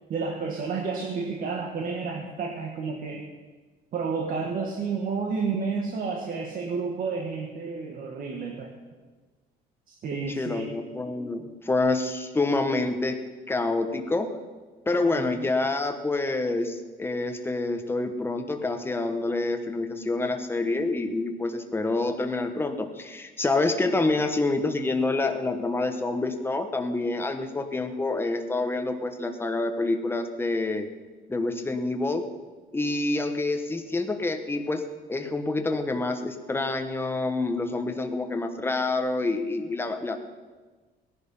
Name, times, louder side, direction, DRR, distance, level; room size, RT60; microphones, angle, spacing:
voice 1, 0.1-3.3 3.9-8.7 9.9-10.8 15.2-15.3, right 4 dB, 55° right, 1 dB, 1.7 m, -31 dB
voice 2, 10.3-13.2 13.5-14.3 14.9-30.9 31.3-32.3 32.7-34.8 35.1-40.2, left 2 dB, 15° left, 6 dB, 1.3 m, -27 dB
16.5 x 11.0 x 5.6 m, 1.3 s
cardioid pair, 110°, 17 cm